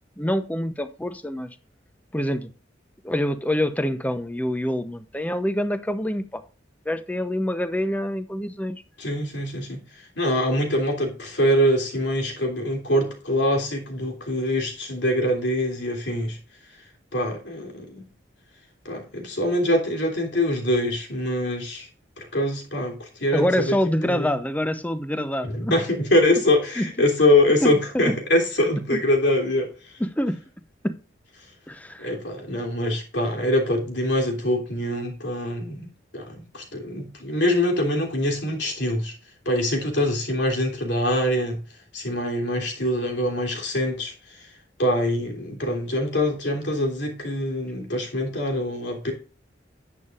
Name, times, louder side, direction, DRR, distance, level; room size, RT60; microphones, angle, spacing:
voice 1, 0.2-1.5 2.1-2.5 3.0-6.4 6.9-8.8 23.3-25.8 26.8-26.9 27.6-28.1 28.9-29.0 30.0-30.4 30.8-31.0 31.7-32.1, left 1 dB, 10° left, 0.8 m, -26 dB
voice 2, 9.0-9.8 10.2-16.4 17.1-18.0 18.8-21.9 22.2-23.8 24.0-24.3 25.4-30.0 32.0-39.1 39.4-41.6 41.9-44.5 44.8-49.1, left 1 dB, 70° left, 3.2 m, -24 dB
10.5 x 8.9 x 2.5 m
head